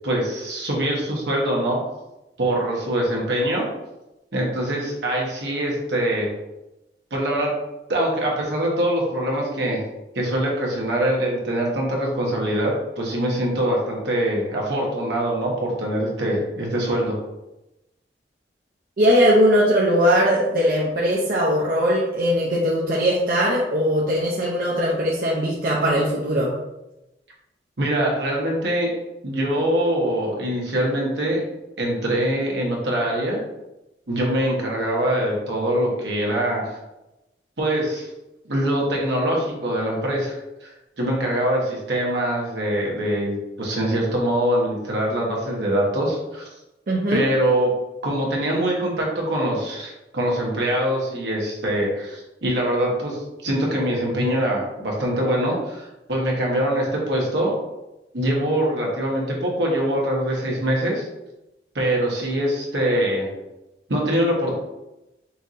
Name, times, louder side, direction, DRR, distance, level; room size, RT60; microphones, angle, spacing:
voice 1, 0.0-1.8 2.4-3.7 4.3-6.3 7.1-7.6 7.9-9.8 10.1-17.2 27.8-28.9 29.2-31.4 31.8-33.4 34.1-36.8 37.6-38.1 38.4-46.5 47.1-47.7 48.0-57.6 58.1-61.1 61.7-63.3 63.9-64.5, right 1 dB, 75° right, -2 dB, 1.1 m, -23 dB
voice 2, 19.0-26.5 46.9-47.3, equal, 55° right, -5 dB, 0.6 m, -20 dB
5.6 x 2.7 x 2.5 m, 0.97 s
head